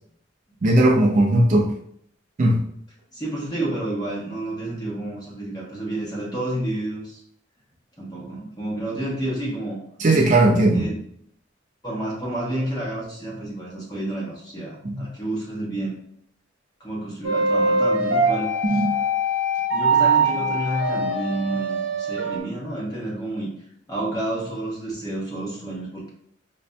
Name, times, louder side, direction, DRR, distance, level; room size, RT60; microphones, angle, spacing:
voice 1, 0.6-1.7 2.4-2.6 10.0-10.9 14.8-15.1 18.7-18.9, right 1 dB, 40° right, -1 dB, 0.4 m, -18 dB
voice 2, 3.1-7.2 8.0-9.8 10.7-11.0 11.8-16.0 16.8-18.9 19.7-23.5 23.9-26.1, right 1 dB, 20° left, -4 dB, 0.9 m, -30 dB
sound 1, 17.2-22.4, right 2 dB, 90° right, 1.0 m, -22 dB
5.1 x 2.5 x 2.2 m, 0.68 s
head